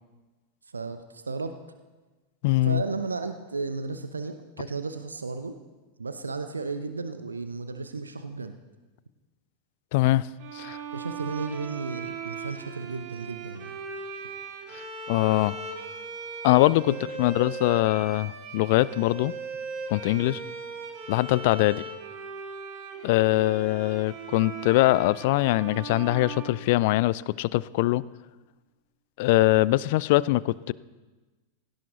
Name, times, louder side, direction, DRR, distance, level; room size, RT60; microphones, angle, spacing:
voice 1, 0.7-1.5 2.6-5.6 6.0-8.6 10.9-13.8 16.9-17.3 20.2-20.4, right 4 dB, 75° right, 9 dB, 0.8 m, -34 dB
voice 2, 2.4-2.8 9.9-10.3 10.5-10.8 14.7-15.6 16.4-19.3 19.9-20.4 21.1-21.8 23.0-28.0 29.2-30.7, left 18 dB, 50° left, 21 dB, 0.4 m, -23 dB
sound 1, 10.4-27.2, right 4 dB, 45° right, 2.0 m, -39 dB
17.0 x 17.0 x 3.9 m, 1.2 s
figure-of-eight pair, 90°, 0 cm